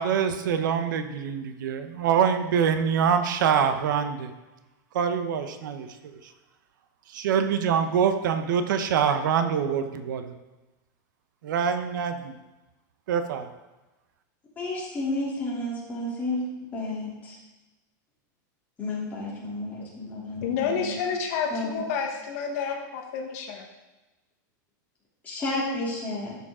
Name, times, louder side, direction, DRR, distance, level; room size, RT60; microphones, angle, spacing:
voice 1, 0.0-4.3 4.9-5.9 7.1-10.3 11.4-12.3 13.1-13.5, right 7 dB, 75° right, 8 dB, 0.9 m, -25 dB
voice 2, 14.6-16.4 16.7-17.4 18.8-21.0 21.5-21.8 25.2-26.4, left 2 dB, 15° left, -6 dB, 3.1 m, -31 dB
voice 3, 20.4-23.7, left 6 dB, 50° left, 2 dB, 1.3 m, -29 dB
12.5 x 6.9 x 3.7 m, 1.1 s
supercardioid pair, 165°, 11 cm